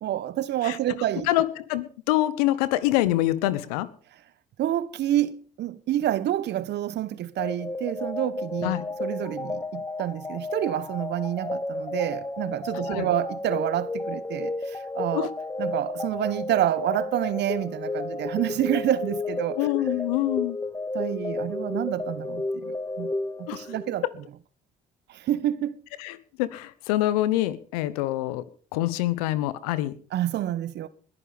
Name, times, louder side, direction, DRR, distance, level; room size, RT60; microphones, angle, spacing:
voice 1, 0.0-1.3 4.6-8.7 9.0-15.3 15.6-19.6 20.9-23.1 23.4-24.0 25.1-25.8 30.1-30.9, right 12 dB, 65° right, 1.2 m, -28 dB
voice 2, 1.3-3.9 8.6-8.8 12.9-13.1 15.1-15.3 19.6-20.6 23.5-23.6 26.0-28.4 28.7-29.9, left 15 dB, 85° left, 1.0 m, -25 dB
sound 1, 7.4-24.0, left 2 dB, 15° left, 0.9 m, -32 dB
21.0 x 9.9 x 5.2 m
hypercardioid pair, 55°, 19 cm